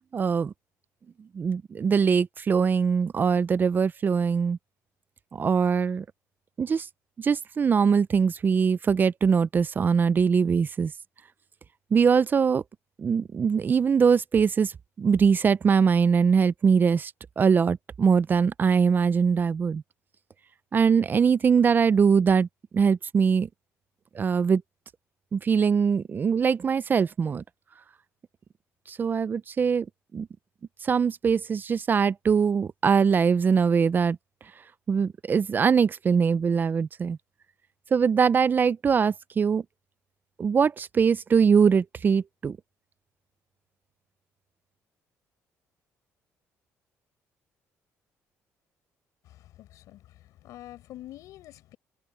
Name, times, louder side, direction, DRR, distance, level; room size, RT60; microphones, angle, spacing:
voice 1, 0.1-0.5 1.3-4.6 5.3-6.0 6.6-6.9 7.2-10.9 11.9-12.6 13.0-14.7 15.0-19.8 20.7-22.5 22.7-23.5 24.1-24.6 25.3-27.4 28.9-29.9 30.1-30.3 30.8-34.2 34.9-37.2 37.9-39.6 40.4-42.6, right 6 dB, 35° right, 0.5 m, -22 dB
voice 2, 49.2-51.8, left 14 dB, 80° left, 5.9 m, -47 dB
cardioid pair, 100°, 6 cm